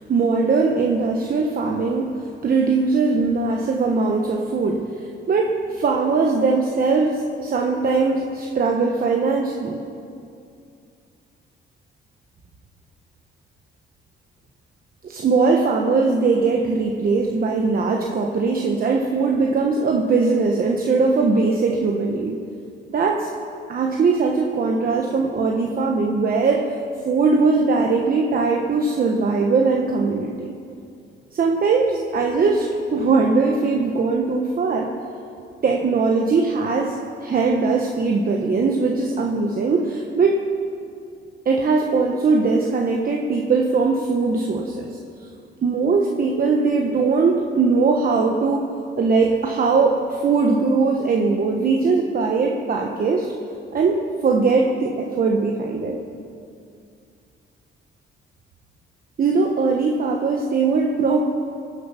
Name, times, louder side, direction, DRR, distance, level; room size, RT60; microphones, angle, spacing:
voice 1, 0.0-4.9 5.3-9.8 15.0-22.4 22.9-23.3 23.7-26.6 27.0-30.5 31.3-34.9 35.6-40.4 41.4-44.9 45.6-48.6 49.0-53.3 53.7-56.0 59.2-61.2, right 4 dB, 45° right, 1 dB, 1.1 m, -20 dB
19.5 x 7.3 x 5.7 m, 2.5 s
cardioid pair, 90°, 20 cm